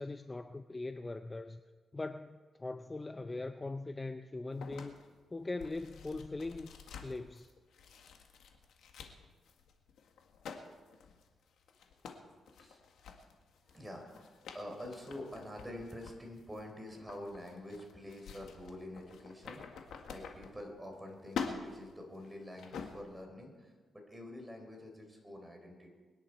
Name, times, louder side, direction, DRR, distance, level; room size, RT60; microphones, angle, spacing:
voice 1, 0.0-1.6 1.9-5.0 5.3-6.7 7.0-7.5, left 2 dB, 20° left, 9 dB, 0.5 m, -41 dB
sound 1, 4.6-21.0 21.3-23.2, left 6 dB, 85° left, 1.6 m, -47 dB
voice 2, 13.6-25.9, left 1 dB, 10° right, 2 dB, 3.8 m, -47 dB
24.0 x 10.5 x 4.6 m, 1.4 s
cardioid pair, 100°, 0 cm